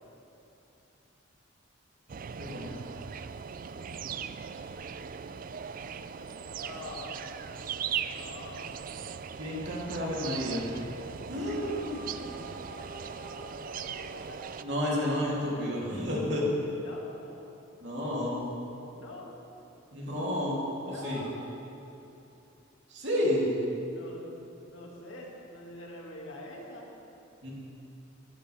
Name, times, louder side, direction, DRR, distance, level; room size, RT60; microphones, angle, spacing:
sound 1, 2.1-14.6, right 7 dB, 45° right, 0.4 m, -39 dB
voice 1, 2.4-2.8 9.4-10.6 11.3-12.0 14.6-16.5 17.8-18.4 19.9-21.2 22.9-23.5 27.4-27.5, left 1 dB, 60° right, -5 dB, 3.2 m, -31 dB
voice 2, 3.7-4.1 6.4-7.2 8.0-8.8 11.7-14.9 15.6-16.3 16.8-17.7 18.9-19.3 20.8-21.4 23.9-26.9, left 1 dB, 80° left, -2 dB, 2.3 m, -46 dB
18.5 x 11.5 x 3.5 m, 2.9 s
head